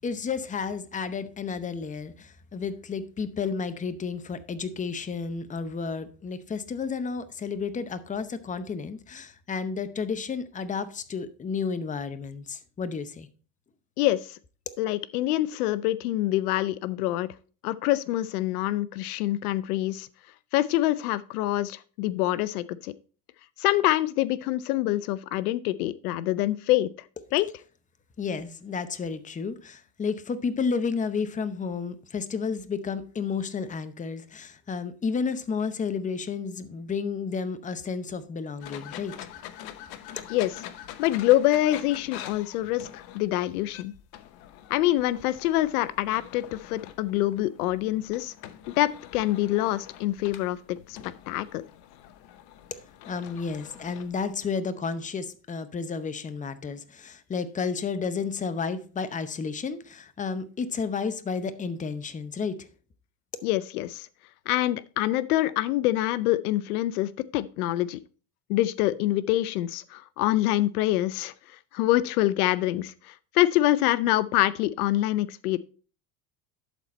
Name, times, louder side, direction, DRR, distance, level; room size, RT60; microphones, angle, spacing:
voice 1, 0.0-13.3 28.2-39.1 52.7-52.8 53.1-62.7, left 5 dB, 15° left, 0.7 m, -32 dB
voice 2, 14.0-14.4 14.8-17.3 17.6-20.1 20.5-22.9 23.6-26.9 27.3-27.5 40.3-40.5 41.0-43.9 44.7-48.3 48.7-51.0 51.3-51.6 63.4-64.1 64.5-68.0 68.5-71.3 71.7-75.6, left 15 dB, 85° left, 0.6 m, -25 dB
sound 1, 38.6-54.5, left 11 dB, 60° left, 0.9 m, -45 dB
11.5 x 4.2 x 4.3 m
supercardioid pair, 100°, 44 cm